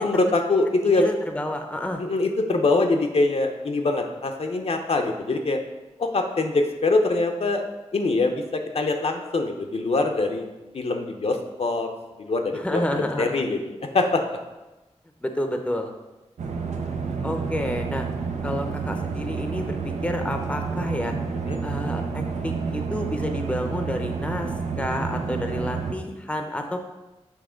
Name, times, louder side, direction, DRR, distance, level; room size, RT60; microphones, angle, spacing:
voice 1, 0.0-1.1 2.0-5.6 6.0-7.6 7.9-10.5 10.7-11.9 12.2-14.4 21.5-21.6, left 3 dB, 60° left, 3 dB, 0.6 m, -23 dB
voice 2, 0.9-2.0 12.5-13.4 15.2-15.9 17.2-18.1 18.4-21.1 21.6-24.5 24.8-26.8, left 1 dB, 10° left, 5 dB, 0.6 m, -30 dB
sound 1, 16.4-25.9, right 5 dB, 90° right, 0.6 m, -29 dB
7.2 x 3.1 x 5.0 m, 1.1 s
wide cardioid pair, 90°, 12 cm